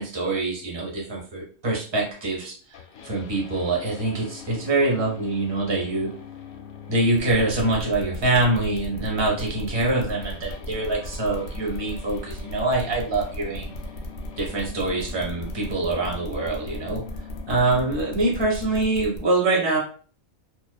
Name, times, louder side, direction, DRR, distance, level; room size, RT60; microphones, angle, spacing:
voice 1, 0.0-2.5 3.0-6.1 6.9-13.8 14.4-17.0 17.5-19.8, right 2 dB, 25° right, -2 dB, 0.6 m, -24 dB
sound 1, 2.7-18.7, left 8 dB, 85° left, 1.0 m, -43 dB
sound 2, 7.2-19.2, left 1 dB, 70° left, 0.4 m, -37 dB
2.5 x 2.3 x 2.2 m, 0.42 s
omnidirectional pair, 1.4 m